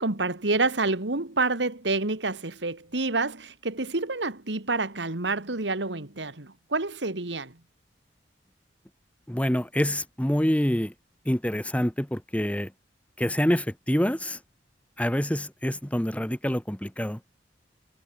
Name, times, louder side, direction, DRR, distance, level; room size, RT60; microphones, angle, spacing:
voice 1, 0.0-7.6, right 3 dB, 75° right, 2.1 m, -28 dB
voice 2, 9.3-10.9 11.2-12.7 13.2-14.4 15.0-17.2, equal, 10° left, 1.4 m, -26 dB
head